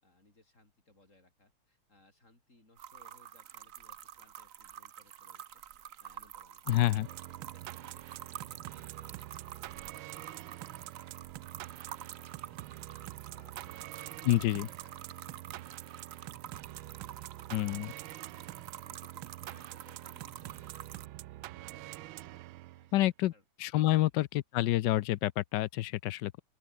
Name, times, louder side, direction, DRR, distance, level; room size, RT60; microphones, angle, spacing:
voice 1, 0.0-18.4 18.7-22.3 22.7-23.0 23.3-23.4 23.9-24.1, left 2 dB, 35° left, 6.4 m, -65 dB
sound 1, 2.8-21.1, right 10 dB, 55° right, 1.0 m, -48 dB
voice 2, 6.7-7.1 14.2-14.7 17.5-17.9 22.9-23.3 23.6-24.3 24.5-26.4, left 15 dB, 70° left, 1.1 m, -28 dB
sound 2, 6.7-23.0, right 17 dB, 80° right, 1.4 m, -46 dB
open air
omnidirectional pair, 2.2 m